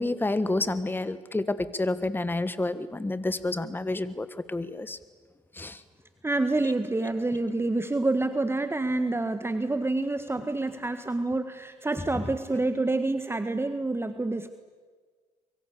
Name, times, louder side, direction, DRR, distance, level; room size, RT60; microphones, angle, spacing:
voice 1, 0.0-5.0 5.5-5.8, left 2 dB, 15° left, 14 dB, 1.5 m, -29 dB
voice 2, 6.2-14.5, right 2 dB, 15° right, 9 dB, 1.6 m, -27 dB
25.0 x 23.5 x 8.5 m, 1.5 s
hypercardioid pair, 55°, 16 cm